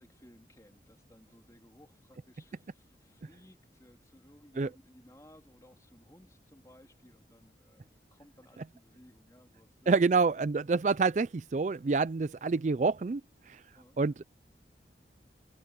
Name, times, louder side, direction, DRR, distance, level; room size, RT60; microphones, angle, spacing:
voice 1, 0.0-10.0 13.7-14.0, equal, 20° left, 3.4 m, -59 dB
voice 2, 9.9-13.2 13.5-13.6 14.0-14.2, right 4 dB, 40° right, 0.4 m, -27 dB
head